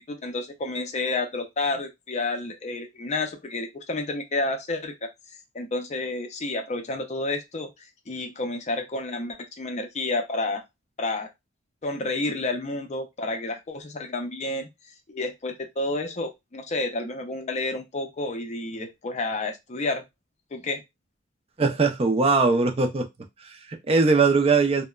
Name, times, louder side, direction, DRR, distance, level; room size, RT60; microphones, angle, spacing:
voice 1, 0.1-5.1 5.5-10.6 11.0-11.3 11.8-20.0 20.5-20.8, left 2 dB, 35° left, 0.5 m, -30 dB
voice 2, 21.6-23.1 23.4-24.8, right 4 dB, 30° right, 0.4 m, -21 dB
2.9 x 2.1 x 2.3 m
head